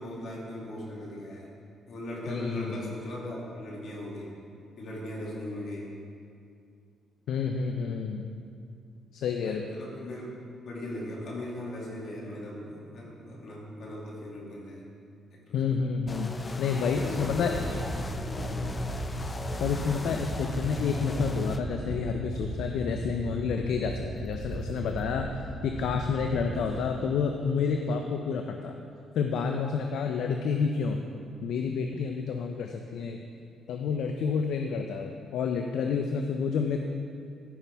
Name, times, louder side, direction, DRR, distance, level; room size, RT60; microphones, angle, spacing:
voice 1, 0.0-1.5 1.9-4.3 4.8-5.9 9.4-10.3 10.6-14.8 15.3-15.8 16.7-18.8 26.6-26.9, left 1 dB, 60° left, -4 dB, 2.4 m, -39 dB
voice 2, 2.3-2.9 7.3-8.3 9.1-9.7 15.5-16.3 16.6-17.6 19.6-25.3 25.6-28.8 29.1-31.0 31.4-33.2 33.7-36.9, left 6 dB, 75° left, 4 dB, 0.5 m, -29 dB
sound 1, 16.1-21.6, left 2 dB, 25° left, 0.5 m, -35 dB
sound 2, 16.9-26.8, right 2 dB, 60° right, 0.7 m, -37 dB
13.5 x 5.8 x 3.4 m, 2.4 s
cardioid pair, 90°, 0 cm